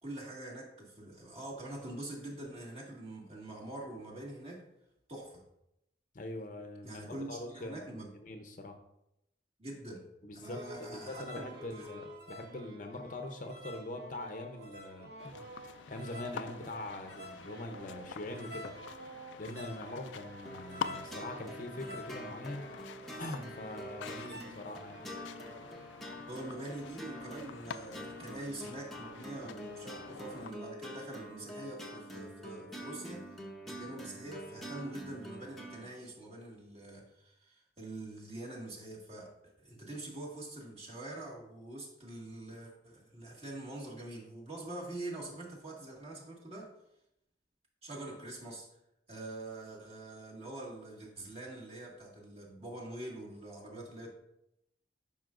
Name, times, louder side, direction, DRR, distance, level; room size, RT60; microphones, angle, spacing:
voice 1, 0.0-4.6 5.1-5.4 6.8-8.1 9.6-10.1 10.3-11.9 26.3-33.3 33.6-46.7 47.8-48.7 49.1-54.1, right 2 dB, 35° right, -3 dB, 1.8 m, -45 dB
voice 2, 6.1-8.8 10.2-18.7 19.4-22.7 23.2-25.0, left 1 dB, 45° left, 5 dB, 0.7 m, -43 dB
sound 1, 10.4-25.8, right 1 dB, 60° right, 1.2 m, -50 dB
sound 2, 15.2-30.5, left 7 dB, 75° left, 0.3 m, -47 dB
sound 3, 20.4-35.9, equal, ahead, 0.8 m, -46 dB
12.0 x 5.6 x 2.5 m, 0.83 s
head